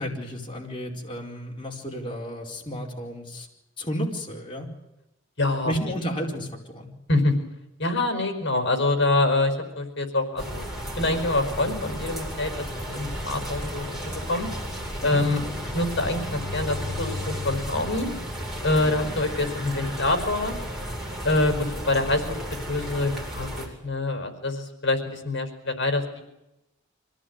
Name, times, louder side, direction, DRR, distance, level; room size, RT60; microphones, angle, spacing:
voice 1, 0.0-3.5 3.8-4.7 5.6-6.9 15.0-15.2 18.8-19.1, equal, 25° left, -1 dB, 4.8 m, -32 dB
voice 2, 5.4-5.7 7.1-7.3 7.8-10.7 11.0-14.5 15.0-15.4 15.7-18.1 18.6-20.5 21.2-22.3 22.6-26.2, left 2 dB, 60° left, 6 dB, 5.1 m, -25 dB
sound 1, 10.4-23.7, equal, ahead, 7.4 m, -33 dB
26.5 x 17.5 x 9.7 m, 0.90 s
head